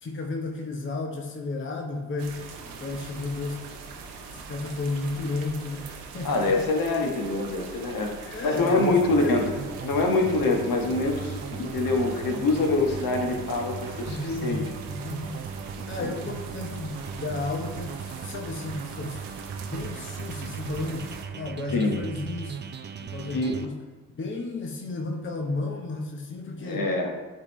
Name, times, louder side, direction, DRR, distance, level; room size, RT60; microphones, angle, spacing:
voice 1, 0.0-3.7 4.3-6.6 8.3-9.7 14.1-15.5 15.9-19.2 19.6-22.7 23.0-23.8 24.1-26.9, left 3 dB, 30° left, 2 dB, 0.8 m, -33 dB
sound 1, 2.2-21.3, right 5 dB, 75° right, 0.9 m, -42 dB
voice 2, 6.2-9.5 9.8-14.6 15.8-16.1 21.7-22.0 23.3-23.7 26.6-27.1, left 2 dB, 55° left, 2 dB, 1.3 m, -25 dB
sound 2, 8.9-23.7, right 6 dB, 30° right, 0.4 m, -38 dB
9.4 x 3.7 x 3.1 m, 1.3 s
hypercardioid pair, 45°, 40 cm